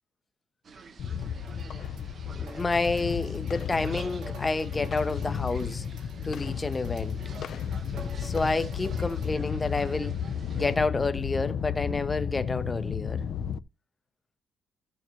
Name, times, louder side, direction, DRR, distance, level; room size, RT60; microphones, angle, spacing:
sound 1, 0.6-10.8, right 5 dB, 40° right, 0.9 m, -48 dB
sound 2, 1.0-13.6, left 7 dB, 55° left, 0.5 m, -33 dB
sound 3, 1.2-9.3, right 4 dB, 70° right, 1.6 m, -50 dB
voice 1, 2.4-5.8 6.2-7.2 8.2-10.2 10.5-13.2, left 3 dB, 15° left, 0.7 m, -29 dB
13.5 x 6.8 x 3.0 m
cardioid pair, 145°, 0 cm